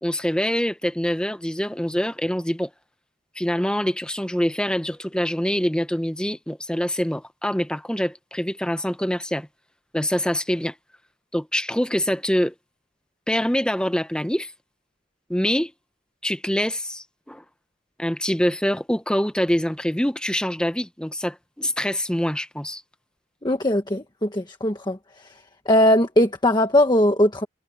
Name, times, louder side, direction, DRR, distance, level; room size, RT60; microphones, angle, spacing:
voice 1, 0.0-2.7 3.4-9.5 9.9-10.7 11.3-12.5 13.3-14.5 15.3-15.7 16.2-17.4 18.0-22.8, equal, 5° left, 0.9 m, -25 dB
voice 2, 23.4-25.0 25.6-27.5, left 1 dB, 25° left, 1.5 m, -19 dB
head